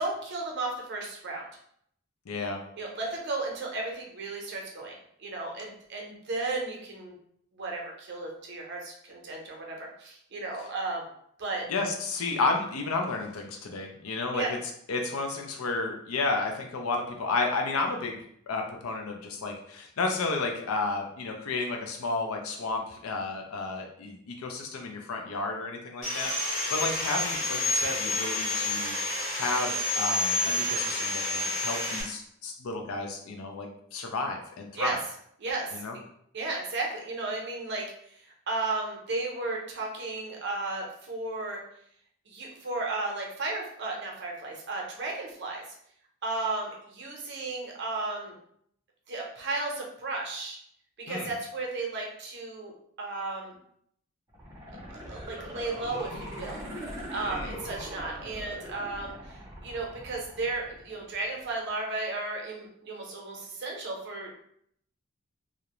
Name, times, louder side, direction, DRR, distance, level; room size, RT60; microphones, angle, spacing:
voice 1, 0.0-1.5 2.8-7.1 7.5-11.1 11.4-11.6 14.3-14.5 34.7-35.0 35.4-36.0 36.3-41.6 42.3-45.6 46.2-48.3 49.1-50.6 51.1-52.7 53.0-53.5 54.9-56.6 57.1-64.3, right 3 dB, 55° right, 0 dB, 0.6 m, -34 dB
voice 2, 2.3-2.6 11.7-14.4 14.9-18.2 18.5-28.9 29.3-35.0 35.7-35.9 51.1-51.3 57.2-57.6, left 3 dB, 85° left, 3 dB, 0.5 m, -32 dB
Sawing, 26.0-32.0, left 2 dB, 40° left, 1.0 m, -29 dB
sound 1, 54.3-61.3 61.7-61.8, equal, 15° right, 0.6 m, -41 dB
2.4 x 2.1 x 2.9 m, 0.68 s
head